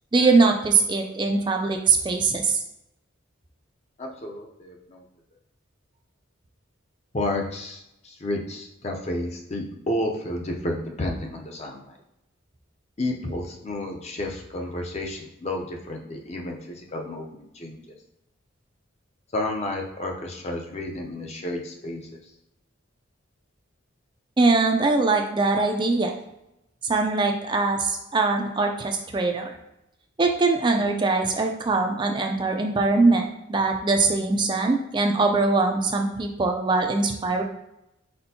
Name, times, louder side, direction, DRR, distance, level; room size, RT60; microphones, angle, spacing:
voice 1, 0.1-2.6 24.4-26.1 26.9-29.5 30.2-37.4, right 3 dB, 25° right, 3 dB, 0.4 m, -22 dB
voice 2, 4.0-5.0 7.1-11.8 13.0-17.9 19.3-22.2, left 1 dB, 35° left, 1 dB, 0.6 m, -31 dB
4.3 x 4.3 x 2.7 m, 0.85 s
head